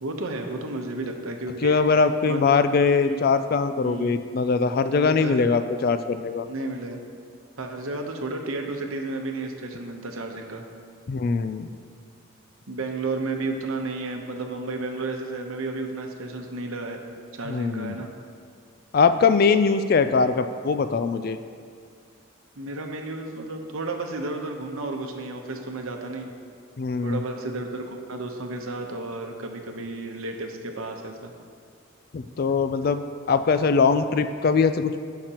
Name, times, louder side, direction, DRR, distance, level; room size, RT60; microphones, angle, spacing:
voice 1, 0.0-1.8 2.2-2.7 3.0-3.2 3.8-4.2 4.9-5.5 6.5-7.0 7.6-10.6 12.7-17.0 17.3-18.1 22.6-26.3 27.0-31.3, right 2 dB, 80° right, 3 dB, 0.9 m, -32 dB
voice 2, 1.6-6.5 11.1-11.7 17.5-18.0 18.9-21.4 26.8-27.2 32.1-33.0 33.3-35.0, left 5 dB, 45° left, 10 dB, 0.3 m, -22 dB
16.5 x 5.9 x 2.9 m, 2.2 s
head